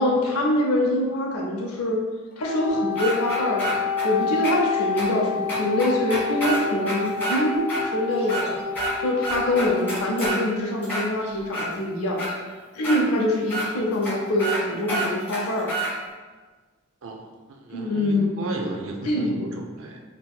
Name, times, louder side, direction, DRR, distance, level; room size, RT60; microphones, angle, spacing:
voice 1, 0.0-2.0 2.4-3.8 4.0-8.5 9.0-12.2 12.7-15.7 17.7-18.4 19.0-19.5, left 1 dB, 85° left, -2 dB, 0.6 m, -24 dB
Wind instrument woodwind instrument, 2.3-10.4, left 5 dB, 35° left, 0.4 m, -29 dB
sound 1, 3.0-4.1 4.4-4.5 5.0-5.1 5.5-7.4 7.7-7.8 8.2-8.9 9.2-10.4 10.8-11.7 12.2-12.3 12.8-13.0 13.5-13.7 14.0-14.1 14.4-14.6 14.9-15.9, right 2 dB, 10° left, 1.4 m, -28 dB
voice 2, 17.0-20.0, right 2 dB, 70° right, 2 dB, 0.5 m, -35 dB
3.6 x 2.9 x 2.3 m, 1.4 s
head